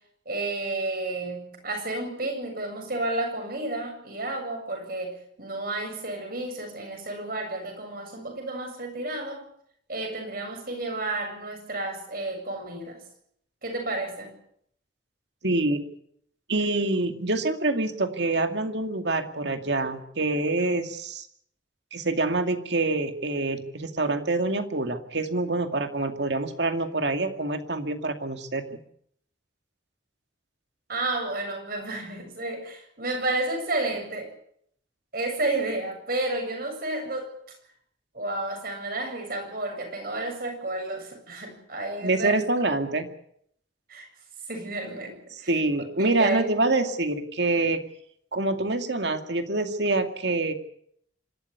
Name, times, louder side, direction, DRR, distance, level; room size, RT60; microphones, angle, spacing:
voice 1, 0.3-9.5 9.9-13.0 13.6-14.3 30.9-34.3 35.1-37.3 38.1-42.4 43.9-44.1 44.5-45.5 46.0-46.4, right 2 dB, 50° right, 4 dB, 7.6 m, -31 dB
voice 2, 15.4-15.8 16.5-21.2 21.9-28.8 42.0-43.1 45.3-47.8 48.3-50.5, right 2 dB, 70° right, 7 dB, 2.3 m, -26 dB
26.0 x 13.0 x 9.7 m, 0.69 s
head